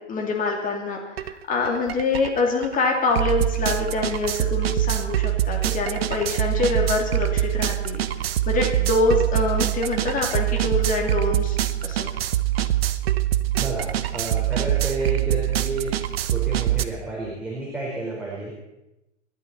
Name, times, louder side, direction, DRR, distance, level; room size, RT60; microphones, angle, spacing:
voice 1, 0.1-8.1 8.5-12.1, left 3 dB, 20° left, 1 dB, 3.0 m, -25 dB
sound 1, 1.2-1.3 1.6-16.8, right 13 dB, 55° right, 0.9 m, -24 dB
voice 2, 13.5-16.0 16.3-18.5, right 2 dB, 5° right, -6 dB, 4.6 m, -30 dB
28.0 x 11.5 x 4.3 m, 0.96 s
figure-of-eight pair, 105°, 37 cm